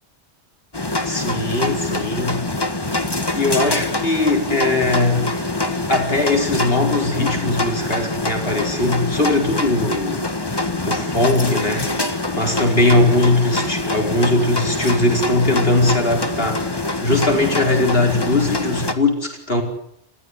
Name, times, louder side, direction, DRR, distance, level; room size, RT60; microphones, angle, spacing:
sound 1, 0.7-18.9, left 2 dB, 20° left, 1.7 m, -24 dB
voice 1, 1.0-2.5 3.3-5.3 5.9-10.3 10.9-19.6, left 2 dB, 55° left, 3 dB, 5.0 m, -20 dB
29.5 x 15.0 x 9.7 m, 0.72 s
omnidirectional pair, 1.2 m